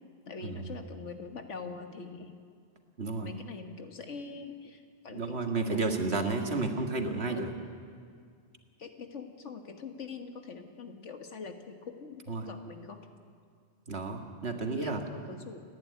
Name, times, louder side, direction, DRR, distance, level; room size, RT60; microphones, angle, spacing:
voice 1, 0.3-2.4 3.2-5.8 6.1-6.7 7.3-7.6 8.8-13.0 14.8-15.6, left 4 dB, 85° left, 6 dB, 1.9 m, -44 dB
voice 2, 3.0-3.3 5.1-7.5 12.3-12.5 13.9-15.0, right 3 dB, 65° right, 4 dB, 2.0 m, -32 dB
30.0 x 10.5 x 9.5 m, 2.1 s
omnidirectional pair, 1.2 m